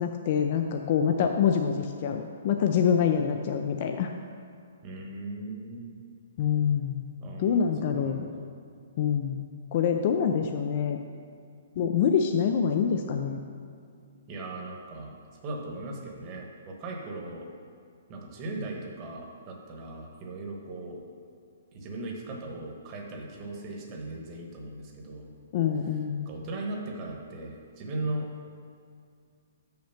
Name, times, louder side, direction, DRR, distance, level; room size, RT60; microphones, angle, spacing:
voice 1, 0.0-4.1 6.4-7.1 7.4-8.3 9.0-11.0 11.8-13.4 25.5-26.3, left 7 dB, 45° left, 4 dB, 0.4 m, -26 dB
voice 2, 4.8-5.8 7.2-8.5 14.3-15.1 15.4-17.5 18.1-21.0 21.7-25.3 26.2-28.3, right 2 dB, 30° right, 0 dB, 1.2 m, -38 dB
6.4 x 5.7 x 5.7 m, 2.3 s
hypercardioid pair, 155°, 0 cm